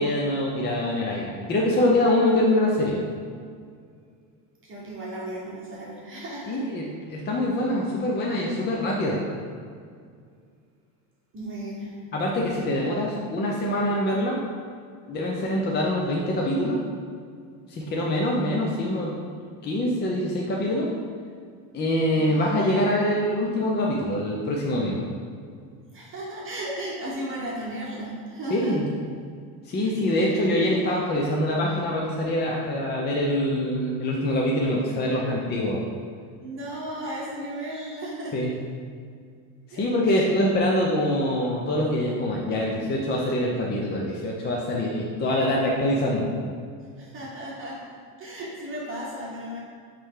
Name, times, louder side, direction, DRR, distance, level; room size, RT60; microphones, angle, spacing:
voice 1, 0.0-3.0 6.5-6.8 7.1-9.2 12.1-14.4 15.1-16.8 17.7-19.1 19.6-20.9 21.7-25.0 28.5-28.9 29.7-35.8 38.3-38.5 39.7-46.3, left 1 dB, 25° left, -2 dB, 0.6 m, -24 dB
voice 2, 4.6-6.6 11.3-12.1 22.1-22.5 25.9-28.8 29.7-30.3 36.4-38.4 39.7-40.3 47.0-47.8 48.2-49.6, right 1 dB, 30° right, -5 dB, 1.3 m, -35 dB
8.1 x 3.4 x 3.7 m, 2.2 s
cardioid pair, 135°, 42 cm